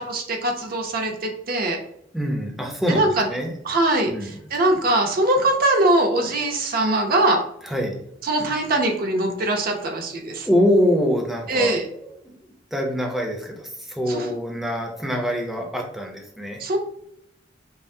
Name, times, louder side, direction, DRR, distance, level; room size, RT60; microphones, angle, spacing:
voice 1, 0.0-1.8 2.9-3.3 3.6-7.4 8.2-10.5 11.5-11.8 14.1-14.3 16.6-16.8, right 1 dB, 50° right, 1 dB, 0.6 m, -22 dB
voice 2, 2.1-3.5 4.1-4.3 7.6-8.0 10.4-11.7 12.7-16.6, equal, ahead, 1 dB, 0.6 m, -24 dB
5.5 x 2.0 x 2.6 m, 0.75 s
head